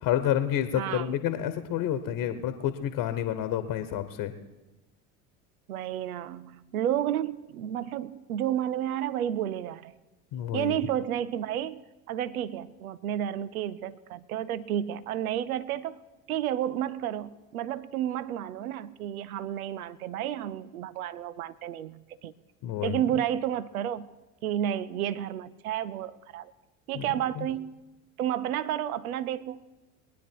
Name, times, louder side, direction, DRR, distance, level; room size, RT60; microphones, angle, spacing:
voice 1, 0.0-4.3 10.3-10.9 22.6-23.0 26.9-27.1 27.4-27.5, left 11 dB, 50° left, 10 dB, 1.2 m, -29 dB
voice 2, 0.8-1.1 5.7-9.9 10.5-11.8 12.1-16.0 16.3-22.3 22.8-24.1 24.4-26.5 26.9-27.7 28.2-29.6, right 11 dB, 85° right, 18 dB, 0.6 m, -31 dB
22.0 x 10.0 x 4.6 m, 1.1 s
hypercardioid pair, 70°, 42 cm